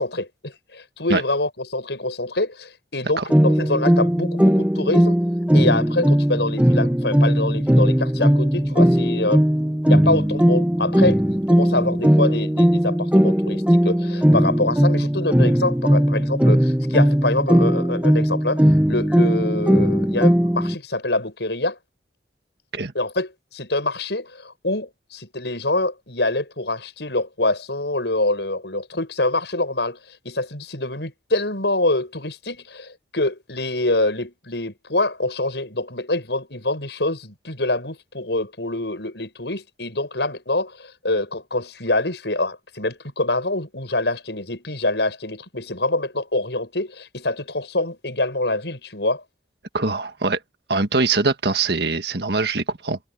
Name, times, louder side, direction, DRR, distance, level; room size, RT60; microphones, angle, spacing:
voice 1, 0.0-5.2 5.5-21.8 22.9-49.2, left 2 dB, 75° left, 7.2 m, -25 dB
sound 1, 3.3-20.7, equal, 5° right, 0.8 m, -18 dB
voice 2, 49.7-50.4 50.7-53.0, right 3 dB, 65° right, 1.6 m, -22 dB
head